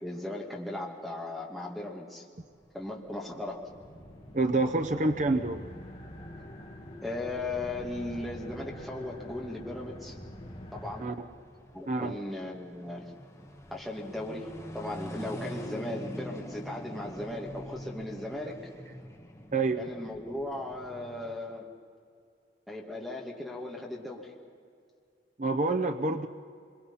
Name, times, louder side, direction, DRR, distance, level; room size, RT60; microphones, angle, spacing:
voice 1, 0.0-2.3 2.7-3.7 7.0-10.2 10.7-11.2 11.7-13.1 13.7-18.7 19.8-21.7 22.7-24.3, left 2 dB, ahead, -1 dB, 2.4 m, -37 dB
sound 1, 2.4-21.4, equal, 15° left, 1.6 m, -46 dB
sound 2, 3.6-11.1, equal, 30° left, 2.3 m, -45 dB
voice 2, 4.3-5.6 11.0-11.1 11.9-12.2 19.5-19.8 25.4-26.3, right 2 dB, 40° right, 6 dB, 0.7 m, -27 dB
26.0 x 22.5 x 5.7 m, 2.3 s
head